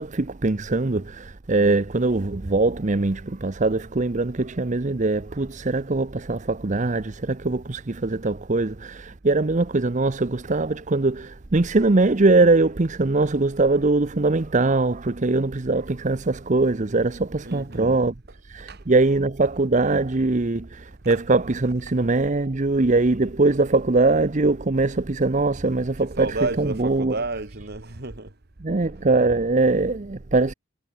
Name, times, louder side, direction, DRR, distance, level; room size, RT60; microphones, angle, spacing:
voice 1, 0.0-18.1 18.5-27.1 28.6-30.5, right 3 dB, 40° right, 0.8 m, -22 dB
voice 2, 17.4-18.0 18.7-18.8 21.1-21.2 26.0-28.3, right 3 dB, 55° right, 2.4 m, -31 dB
head